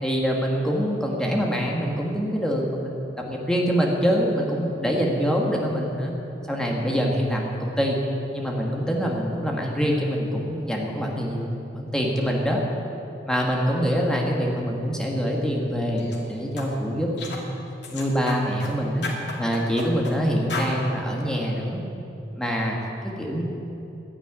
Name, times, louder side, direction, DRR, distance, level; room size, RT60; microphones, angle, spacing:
voice 1, 0.0-2.9 3.3-6.1 6.5-8.0 8.3-11.5 11.7-12.6 13.3-17.4 17.9-19.1 19.4-21.8 22.3-22.8 23.2-23.4, equal, 5° left, -2 dB, 1.5 m, -25 dB
sound 1, 16.0-16.2 16.6-16.7 17.2-17.5 17.8-18.7 19.0-20.2 20.5-20.7, left 3 dB, 75° left, 2.6 m, -33 dB
12.0 x 9.8 x 9.7 m, 3.0 s
head